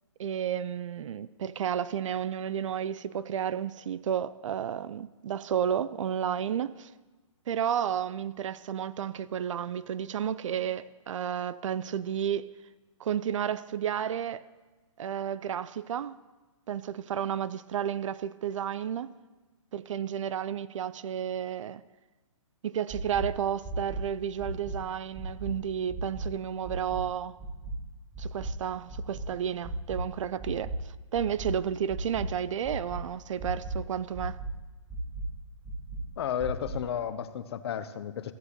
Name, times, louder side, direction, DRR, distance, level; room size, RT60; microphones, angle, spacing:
voice 1, 0.2-6.9 7.5-12.5 13.0-14.5 15.0-16.2 16.7-19.1 19.7-21.8 22.6-27.4 28.2-34.4, right 9 dB, 70° right, 0.4 m, -32 dB
sound 1, 22.9-23.2 23.6-24.0 24.4-24.7 25.1-25.5 25.9-26.2 26.6-27.0 27.4-27.7 28.1-28.5 28.9-29.2 29.6-30.0 30.4-30.7 31.1-31.5 31.9-32.2 32.6-33.0 33.4-33.7 34.1-34.5 34.9-35.2 35.6-36.0 36.4-36.7, right 2 dB, 5° right, 3.3 m, -40 dB
voice 2, 36.2-38.3, left 9 dB, 50° left, 0.6 m, -33 dB
15.0 x 8.0 x 2.9 m
hypercardioid pair, 145°, 17 cm